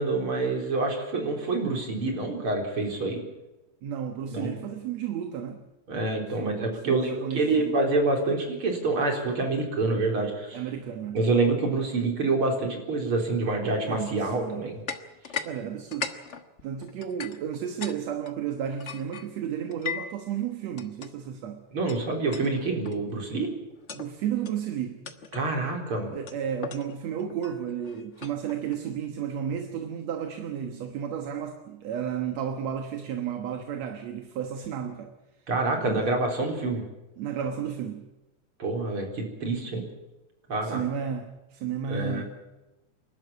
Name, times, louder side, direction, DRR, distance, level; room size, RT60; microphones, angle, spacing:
voice 1, 0.0-3.2 4.3-4.5 5.9-10.6 11.1-14.8 21.7-23.5 25.3-26.1 35.5-36.8 38.6-39.8 40.5-40.9 41.9-42.2, right 3 dB, 45° right, 4.8 m, -27 dB
voice 2, 3.8-5.7 6.4-7.8 10.5-11.2 13.8-14.8 15.4-16.1 16.6-21.6 23.9-25.0 26.1-35.1 35.8-36.1 37.2-38.0 40.6-42.2, right 8 dB, 65° right, 2.4 m, -33 dB
sound 1, 14.9-15.5 15.8-18.0 18.2-20.2 20.8-21.1 21.9-22.0 22.3-22.5 22.8-23.1 23.7-24.1 24.4-24.6 25.0-25.5 26.3-28.8, left 6 dB, 75° left, 0.6 m, -38 dB
27.0 x 12.0 x 9.7 m
omnidirectional pair, 3.4 m